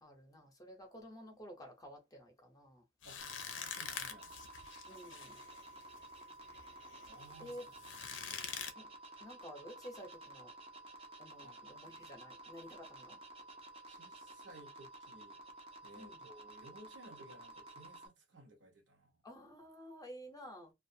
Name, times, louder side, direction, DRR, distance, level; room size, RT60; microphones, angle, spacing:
voice 1, 0.0-2.8 4.9-5.4 7.4-7.6 8.8-8.9 9.2-10.5 11.2-13.2 15.9-16.2 19.2-20.7, equal, 20° left, 0.7 m, -52 dB
sound 1, 3.0-8.7, left 7 dB, 80° left, 0.5 m, -46 dB
voice 2, 3.0-4.4 7.1-7.7 8.2-8.5 11.4-11.9 13.9-15.4 15.8-19.2, right 1 dB, 75° right, 0.9 m, -58 dB
sound 2, 3.2-18.1, right 2 dB, 30° right, 0.6 m, -53 dB
2.4 x 2.3 x 2.7 m
head